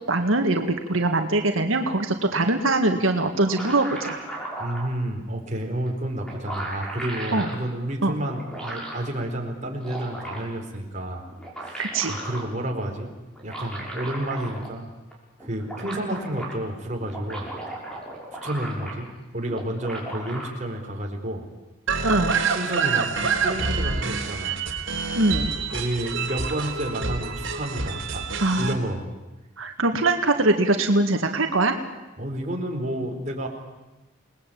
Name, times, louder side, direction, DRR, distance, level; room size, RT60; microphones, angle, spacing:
voice 1, 0.1-4.2 7.3-7.5 8.0-8.1 11.8-12.1 22.0-22.3 25.2-25.5 28.4-28.8 29.6-31.8, right 2 dB, 90° right, 5 dB, 2.0 m, -22 dB
sound 1, 3.2-4.9 5.9-6.0 6.2-7.6 8.3-9.1 9.6-10.6 11.3-12.5 13.4-14.8 15.1-15.2 15.4-16.6 17.0-19.2 19.5-20.5, right 1 dB, 5° left, 5.9 m, -36 dB
voice 2, 4.6-11.3 11.6-13.1 13.4-14.9 15.4-17.5 18.4-19.1 19.3-21.5 22.5-24.7 25.7-28.2 28.6-29.1 32.2-33.5, right 1 dB, 35° right, 1 dB, 4.4 m, -30 dB
sound 2, 21.9-28.7, right 5 dB, 70° right, 3.6 m, -27 dB
29.0 x 20.0 x 8.7 m, 1.1 s
head